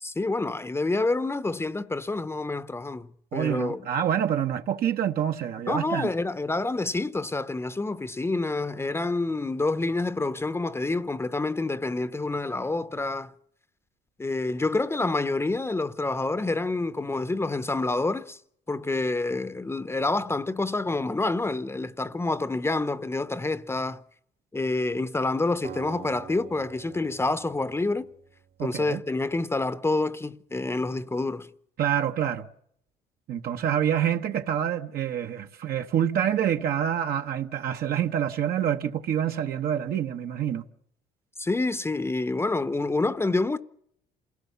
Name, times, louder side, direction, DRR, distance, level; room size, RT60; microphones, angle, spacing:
voice 1, 0.0-3.9 5.7-13.3 14.2-18.4 18.7-24.0 24.5-28.1 28.6-31.5 41.4-43.6, left 2 dB, 15° left, 0.8 m, -28 dB
voice 2, 3.3-6.1 28.6-29.0 31.8-32.5 33.3-40.6, right 9 dB, 65° right, 1.2 m, -27 dB
Acoustic guitar, 25.6-28.8, right 9 dB, 85° right, 3.0 m, -45 dB
27.5 x 17.5 x 7.0 m
cardioid pair, 110°, 17 cm